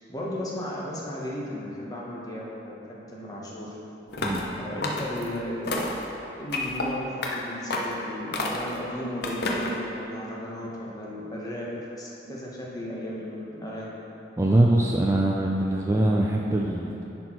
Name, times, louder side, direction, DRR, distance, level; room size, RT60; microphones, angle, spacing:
voice 1, 0.1-3.7 4.6-5.9 6.4-11.7 12.0-13.9, equal, 20° left, -5 dB, 1.2 m, -35 dB
sound 1, 4.1-4.5 4.8-5.3 5.7-6.0 6.5-6.9 7.2-7.4 7.7-8.0 8.3-8.8 9.2-9.8, left 2 dB, 60° left, 0.8 m, -29 dB
voice 2, 14.4-17.0, right 1 dB, 15° right, -2 dB, 0.4 m, -23 dB
10.5 x 4.4 x 4.5 m, 3.0 s
head